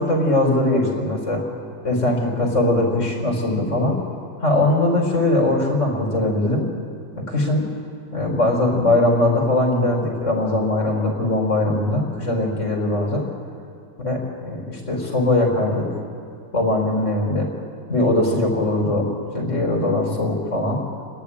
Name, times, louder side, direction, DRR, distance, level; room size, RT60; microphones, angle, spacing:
voice 1, 0.0-1.4 1.8-4.0 4.4-6.7 7.1-7.6 8.1-13.2 14.0-15.9 16.5-17.5 17.9-19.1 19.3-20.8, left 2 dB, 60° left, -2 dB, 4.8 m, -20 dB
29.0 x 10.5 x 9.9 m, 2.6 s
omnidirectional pair, 1.4 m